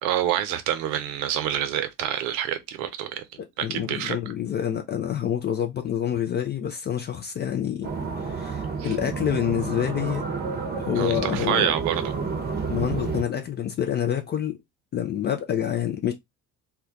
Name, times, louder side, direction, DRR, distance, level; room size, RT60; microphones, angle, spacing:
voice 1, 0.0-3.2 3.6-4.2 8.8-9.0 11.0-12.0, right 10 dB, 60° right, 0.6 m, -27 dB
voice 2, 3.6-7.9 8.3-10.2 10.8-11.7 12.7-14.6 14.9-16.1, left 10 dB, 25° left, 0.3 m, -27 dB
sound 1, 7.8-13.2, right 5 dB, 20° right, 0.8 m, -30 dB
2.2 x 2.2 x 3.6 m
figure-of-eight pair, 50°, 45 cm